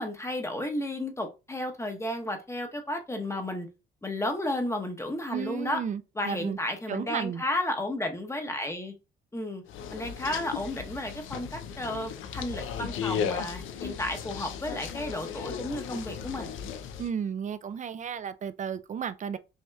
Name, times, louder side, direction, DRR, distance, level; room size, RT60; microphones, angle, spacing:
voice 1, 0.0-3.7 4.0-5.8 6.2-8.9 9.3-9.6 9.9-16.6, left 1 dB, 15° left, 0.9 m, -33 dB
voice 2, 5.3-6.6 6.9-7.4 17.0-19.4, right 7 dB, 40° right, 0.4 m, -33 dB
sound 1, 9.7-17.1, left 7 dB, 80° left, 0.5 m, -36 dB
5.5 x 2.9 x 2.3 m
cardioid pair, 90°, 20 cm